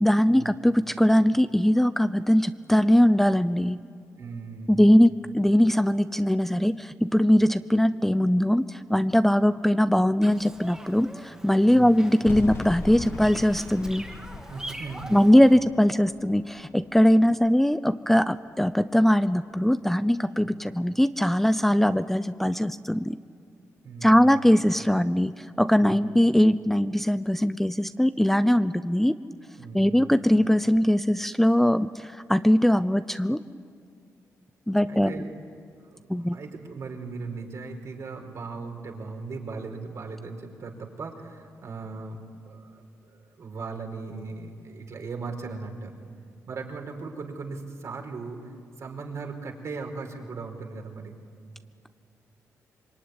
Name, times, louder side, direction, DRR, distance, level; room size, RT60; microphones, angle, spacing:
voice 1, 0.0-3.8 4.7-14.1 15.1-23.2 24.0-29.1 29.7-33.4 34.7-35.2 36.1-36.4, equal, 5° left, 12 dB, 0.7 m, -21 dB
voice 2, 4.2-4.9 11.6-12.1 14.5-15.2 20.4-20.5 23.8-24.5 25.8-26.1 29.6-30.3 34.9-35.3 35.8-45.9 46.5-48.5 48.8-51.2, right 4 dB, 60° right, 3 dB, 5.0 m, -38 dB
Bird vocalization bird call bird song, 10.2-15.6, right 1 dB, 10° right, 2.6 m, -43 dB
sound 1, 12.3-17.4, left 3 dB, 45° left, 1.5 m, -39 dB
26.0 x 23.5 x 9.9 m, 2.2 s
cardioid pair, 85°, 6 cm